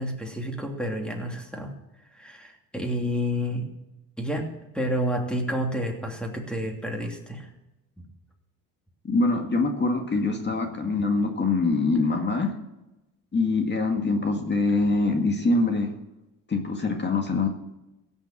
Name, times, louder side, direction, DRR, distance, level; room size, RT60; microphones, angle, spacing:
voice 1, 0.0-1.7 2.1-3.7 4.2-4.5 4.7-7.5, equal, 5° left, 1 dB, 2.9 m, -29 dB
voice 2, 9.1-12.5 13.3-15.9 16.5-17.5, left 3 dB, 30° left, 3 dB, 2.0 m, -24 dB
16.5 x 7.3 x 7.7 m, 0.97 s
cardioid pair, 100°, 36 cm